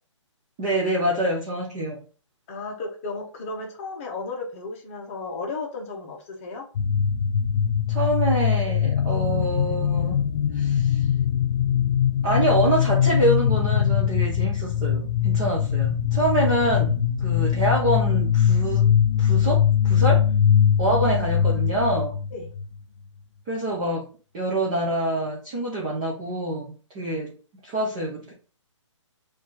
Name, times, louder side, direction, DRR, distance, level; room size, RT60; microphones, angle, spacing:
voice 1, 0.6-2.0 7.9-10.2 10.5-11.0 12.2-18.8 19.2-20.2 20.8-22.2 23.5-24.1 24.3-27.3 27.6-28.3, right 1 dB, 10° right, -4 dB, 0.3 m, -26 dB
voice 2, 2.5-6.6 22.3-22.5, left 3 dB, 25° left, 1 dB, 0.8 m, -34 dB
sound 1, 6.8-22.7, left 8 dB, 65° left, 0.4 m, -22 dB
4.3 x 2.5 x 3.7 m, 0.37 s
hypercardioid pair, 165°, 16 cm